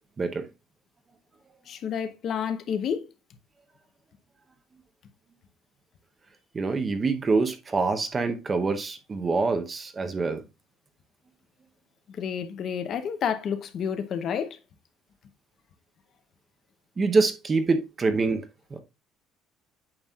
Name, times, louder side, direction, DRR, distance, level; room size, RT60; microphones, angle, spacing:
voice 1, 1.7-3.1 12.1-14.6, left 7 dB, 35° left, 0.8 m, -30 dB
voice 2, 6.5-10.4 17.0-18.4 18.7-18.8, right 3 dB, 20° right, 0.7 m, -25 dB
8.8 x 6.0 x 2.3 m
cardioid pair, 180°, 0 cm